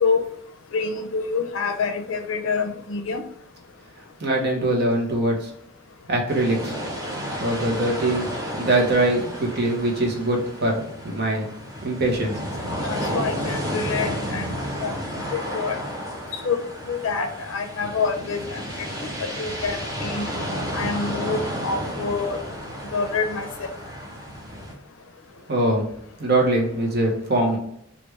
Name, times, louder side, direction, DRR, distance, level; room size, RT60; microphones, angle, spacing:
voice 1, 0.7-3.2 12.8-14.9 15.3-15.8 16.3-16.6 16.9-18.9 19.2-20.3 20.7-22.4 22.9-23.7, left 4 dB, 70° left, 6 dB, 0.5 m, -27 dB
voice 2, 4.2-5.5 6.1-6.7 7.4-8.3 8.5-11.5 11.8-12.4 25.5-25.9 26.2-27.6, right 1 dB, 55° right, 0 dB, 0.9 m, -22 dB
sound 1, 6.3-24.7, equal, 20° right, 0.7 m, -32 dB
3.3 x 2.5 x 3.2 m, 0.73 s
head